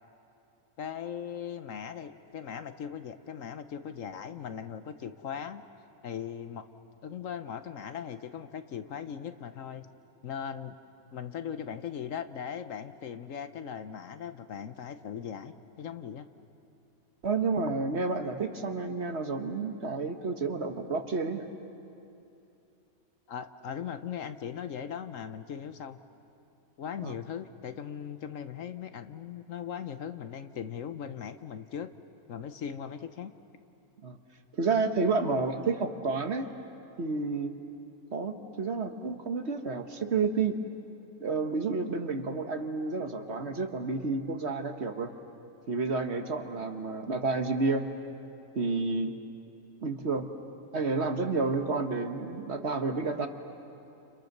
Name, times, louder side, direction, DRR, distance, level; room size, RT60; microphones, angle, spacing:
voice 1, 0.8-5.6 6.0-6.7 7.0-9.9 10.2-10.8 11.1-16.3 23.3-26.0 26.8-31.9 32.3-33.3, left 8 dB, 65° left, 10 dB, 1.2 m, -39 dB
voice 2, 17.2-21.5 27.0-27.1 34.0-34.2 34.5-36.5 37.0-37.5 38.1-40.6 41.2-45.1 45.7-47.9 48.5-49.2 49.8-50.3 50.7-53.3, right 4 dB, 50° right, 6 dB, 1.5 m, -30 dB
29.5 x 29.0 x 6.6 m, 2.7 s
omnidirectional pair, 1.5 m